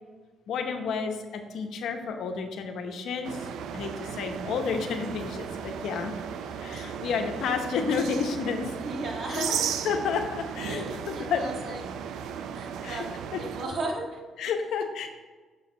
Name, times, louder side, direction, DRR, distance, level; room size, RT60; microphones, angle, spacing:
voice 1, 0.5-3.5 3.7-6.1 6.6-8.7 9.3-9.6 9.8-11.4 12.8-13.0 13.3-13.4 14.4-15.1, left 5 dB, 75° left, 5 dB, 0.8 m, -31 dB
sound 1, 3.2-13.7, right 7 dB, 80° right, 0.4 m, -35 dB
voice 2, 8.8-9.7 10.7-11.9 12.5-13.1 13.4-14.2, right 2 dB, 55° right, 0 dB, 1.6 m, -35 dB
6.6 x 4.1 x 5.3 m, 1.3 s
cardioid pair, 90°, 0 cm